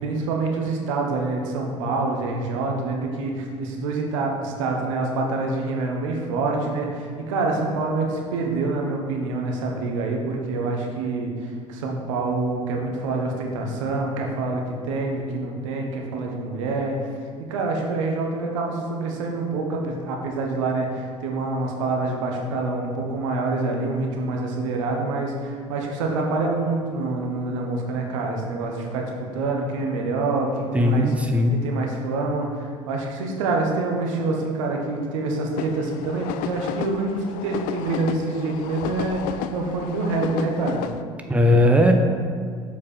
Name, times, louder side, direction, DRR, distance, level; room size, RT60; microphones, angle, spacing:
voice 1, 0.0-17.0 17.5-31.1 31.5-40.9, right 3 dB, 75° right, 1 dB, 1.0 m, -26 dB
voice 2, 30.7-31.6 41.3-41.9, left 1 dB, 10° right, 4 dB, 0.7 m, -18 dB
sound 1, 35.6-41.0, left 9 dB, 55° left, 0.4 m, -33 dB
7.1 x 4.7 x 4.4 m, 2.1 s
figure-of-eight pair, 55°, 17 cm